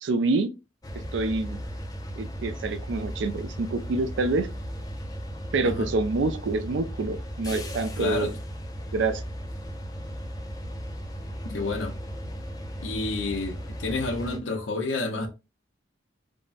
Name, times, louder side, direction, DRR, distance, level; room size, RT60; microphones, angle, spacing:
voice 1, 0.0-0.5 1.1-1.6 2.2-4.5 5.5-8.3 8.9-9.2, right 3 dB, 75° right, 0.4 m, -27 dB
sound 1, 0.8-14.4, equal, 20° left, 0.4 m, -36 dB
voice 2, 8.0-8.4 11.4-11.9 12.8-15.3, left 3 dB, 85° left, 0.6 m, -30 dB
3.5 x 2.1 x 2.4 m
head